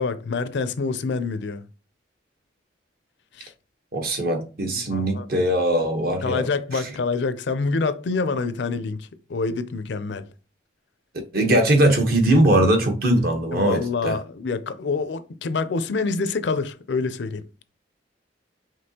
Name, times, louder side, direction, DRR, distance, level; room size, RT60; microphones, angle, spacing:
voice 1, 0.0-1.6 3.3-3.5 4.9-5.3 6.2-10.3 13.5-17.4, left 4 dB, 65° left, 0.5 m, -26 dB
voice 2, 3.9-6.5 11.3-14.2, right 1 dB, 55° right, 1.1 m, -20 dB
5.2 x 2.9 x 2.8 m
head